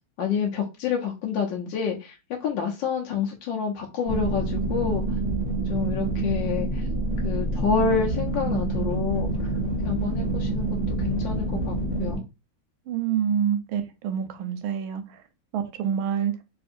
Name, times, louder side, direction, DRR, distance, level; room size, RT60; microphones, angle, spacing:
voice 1, 0.2-2.2 2.4-5.0 5.7-6.8 7.2-9.3 9.8-12.2, left 6 dB, 75° left, 1.3 m, -28 dB
sound 1, 4.1-12.2, right 2 dB, 25° left, 1.1 m, -27 dB
voice 2, 12.9-15.0 15.5-16.3, right 8 dB, 85° right, 1.4 m, -26 dB
3.5 x 2.6 x 2.4 m
omnidirectional pair, 2.2 m